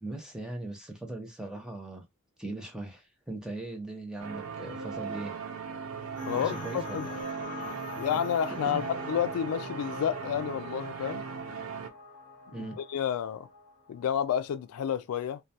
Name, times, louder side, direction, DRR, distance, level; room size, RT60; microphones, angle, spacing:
voice 1, 0.0-2.0 2.4-5.3 6.3-7.2 8.7-8.8 12.5-12.8, right 2 dB, 5° right, 0.6 m, -39 dB
sound 1, 4.2-11.9, right 5 dB, 65° right, 0.4 m, -38 dB
sound 2, 6.2-14.4, left 3 dB, 40° left, 0.6 m, -44 dB
voice 2, 6.3-7.1 8.0-11.2 12.5-13.5 13.9-15.4, left 8 dB, 75° left, 0.3 m, -30 dB
2.2 x 2.2 x 2.7 m
head